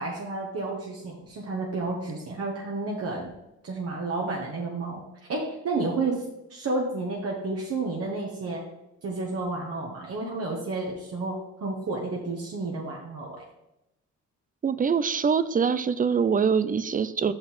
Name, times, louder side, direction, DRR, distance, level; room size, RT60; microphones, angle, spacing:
voice 1, 0.0-3.3 3.6-5.0 5.3-6.2 6.5-8.6 9.0-13.4, right 3 dB, 50° right, -2 dB, 1.5 m, -31 dB
voice 2, 14.6-17.3, right 6 dB, 30° right, 14 dB, 0.5 m, -24 dB
6.0 x 5.3 x 5.9 m, 0.90 s
cardioid pair, 90°, 30 cm